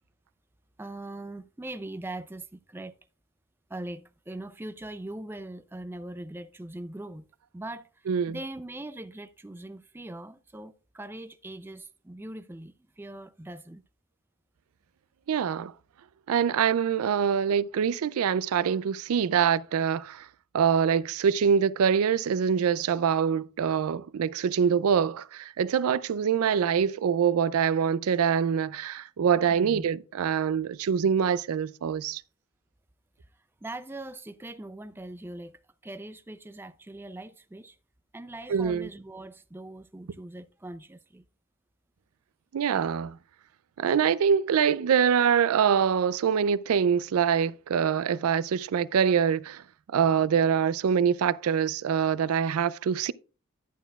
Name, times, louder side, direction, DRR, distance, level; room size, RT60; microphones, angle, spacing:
voice 1, 0.8-2.9 3.7-7.3 7.5-13.8 29.5-29.9 33.6-37.8 38.1-41.2, right 1 dB, 10° right, 0.3 m, -41 dB
voice 2, 8.1-8.4 15.3-15.7 16.3-20.3 20.5-32.2 38.5-38.9 42.5-43.2 43.8-49.6 49.9-53.1, right 7 dB, 80° right, 0.4 m, -24 dB
11.0 x 9.1 x 2.3 m
head